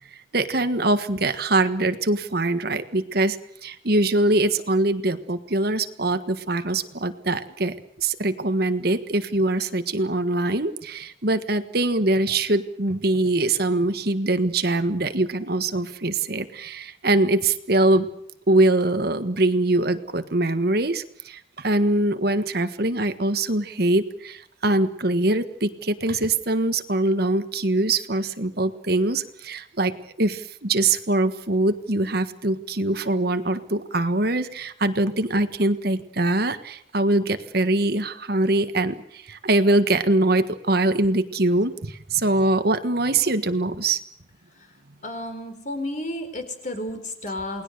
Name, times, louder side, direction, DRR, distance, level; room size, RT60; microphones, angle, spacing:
voice 1, 0.3-18.1 18.5-44.0, right 2 dB, 55° right, 10 dB, 1.5 m, -23 dB
voice 2, 45.0-47.6, left 1 dB, 40° left, 7 dB, 4.4 m, -32 dB
29.0 x 20.0 x 6.7 m, 0.70 s
head